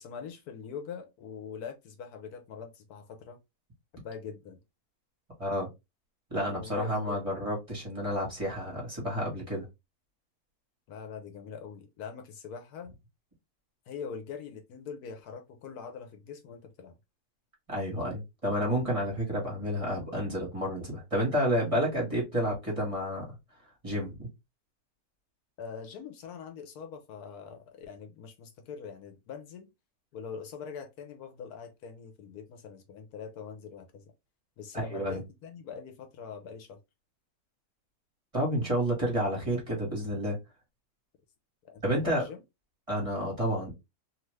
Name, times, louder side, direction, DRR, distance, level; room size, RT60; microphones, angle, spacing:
voice 1, 0.0-3.4 3.9-4.6 6.5-7.4 10.9-13.0 13.9-17.0 25.6-29.7 30.1-34.0 34.6-36.8 41.6-42.4, left 6 dB, 75° left, 1.1 m, -43 dB
voice 2, 6.3-9.6 17.7-23.2 23.8-24.1 34.7-35.2 38.3-40.4 41.8-42.3 42.9-43.7, equal, 25° right, 1.2 m, -30 dB
2.7 x 2.5 x 3.1 m
omnidirectional pair, 1.7 m